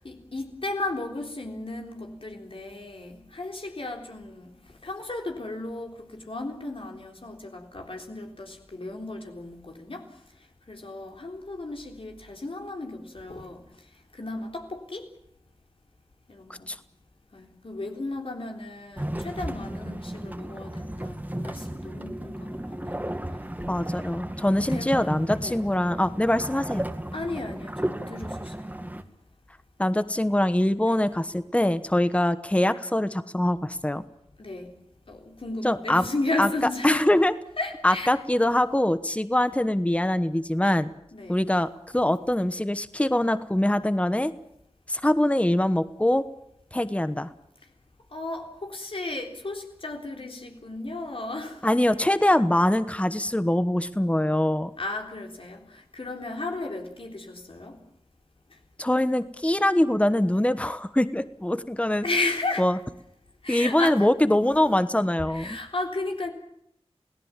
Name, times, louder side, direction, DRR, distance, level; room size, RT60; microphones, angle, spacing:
voice 1, 0.0-4.5 4.8-10.1 10.7-13.6 14.1-15.1 16.3-16.7 17.3-23.1 24.6-25.0 25.4-25.6 27.1-28.7 30.8-31.0 34.4-34.7 35.1-37.1 37.6-38.1 41.1-41.4 48.1-51.6 54.8-57.8 62.0-62.7 63.4-64.1 65.2-66.3, left 2 dB, 60° left, 2 dB, 3.9 m, -34 dB
sound 1, 19.0-29.0, right 1 dB, 15° right, 2.0 m, -34 dB
voice 2, 23.7-26.8 29.8-34.0 35.6-36.1 36.4-36.5 36.8-37.3 37.8-40.9 41.3-44.3 44.9-46.2 46.7-47.3 51.6-54.7 58.8-62.1 62.6-62.8 63.5-65.6, left 1 dB, 10° left, 12 dB, 1.1 m, -23 dB
28.0 x 18.0 x 7.4 m, 0.76 s
wide cardioid pair, 50°, 10 cm